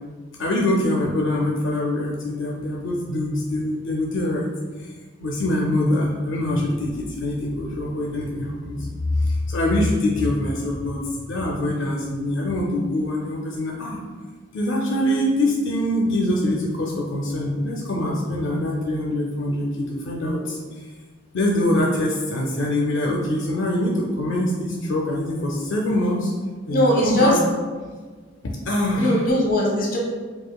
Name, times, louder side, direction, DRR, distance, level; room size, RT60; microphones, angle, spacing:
voice 1, 0.4-4.5 4.8-4.9 5.2-8.9 9.1-11.0 11.3-14.0 14.5-20.6 21.3-26.3 26.7-27.4 28.4-29.3, left 1 dB, 80° left, -1 dB, 0.4 m, -24 dB
voice 2, 26.7-27.3 28.9-30.0, left 1 dB, 45° left, -2 dB, 0.9 m, -20 dB
4.8 x 2.3 x 2.2 m, 1.4 s
head